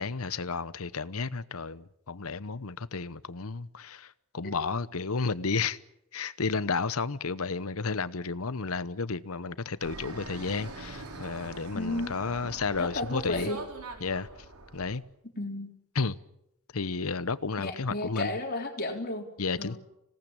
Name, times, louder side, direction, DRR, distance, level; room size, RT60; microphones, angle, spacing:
voice 1, 0.0-5.8 6.1-13.5 14.0-14.3 14.7-15.0 15.9-16.2 16.7-18.3 19.4-19.8, left 4 dB, 75° left, 1.0 m, -32 dB
Fixed-wing aircraft airplane, 9.8-15.0, right 2 dB, 85° right, 4.4 m, -43 dB
voice 2, 11.7-12.2 12.8-13.6 15.4-15.7 17.6-19.3 19.6-19.8, left 2 dB, 45° left, 3.8 m, -33 dB
26.5 x 18.5 x 8.9 m
head